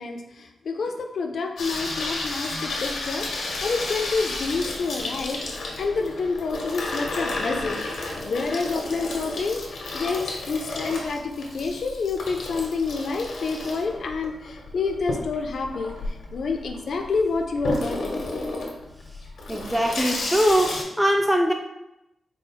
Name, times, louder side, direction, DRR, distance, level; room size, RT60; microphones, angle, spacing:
voice 1, 0.0-3.3 3.6-5.4 5.8-7.8 8.1-15.9 16.3-18.4, left 4 dB, 60° left, 4 dB, 0.5 m, -28 dB
Water tap faucet / Sink (filling or washing), 1.6-20.8, left 2 dB, 80° left, 0.9 m, -32 dB
voice 2, 19.5-21.5, equal, 5° right, 2 dB, 0.3 m, -21 dB
4.3 x 2.0 x 4.4 m, 0.89 s
wide cardioid pair, 145°, 0 cm